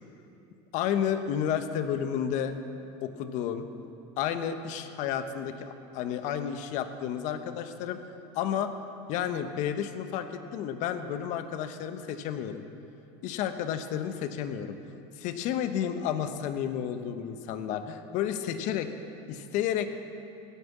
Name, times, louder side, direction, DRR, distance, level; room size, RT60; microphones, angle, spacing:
voice 1, 0.7-2.5 3.0-3.7 4.2-8.0 8.3-8.7 9.1-12.6 13.2-14.8 15.2-18.9 19.3-19.9, left 9 dB, 60° left, 9 dB, 1.1 m, -31 dB
16.5 x 9.5 x 7.4 m, 2.8 s
supercardioid pair, 105°, 14 cm